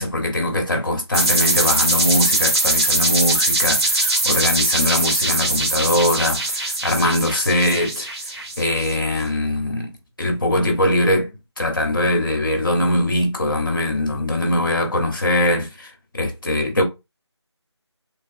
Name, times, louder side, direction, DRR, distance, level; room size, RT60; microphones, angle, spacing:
voice 1, 0.0-9.9 10.2-11.3 11.6-16.8, left 1 dB, 45° left, 1.1 m, -21 dB
sound 1, 1.1-8.9, right 2 dB, 60° right, 1.6 m, -21 dB
3.4 x 2.3 x 2.6 m
figure-of-eight pair, 175°, 15 cm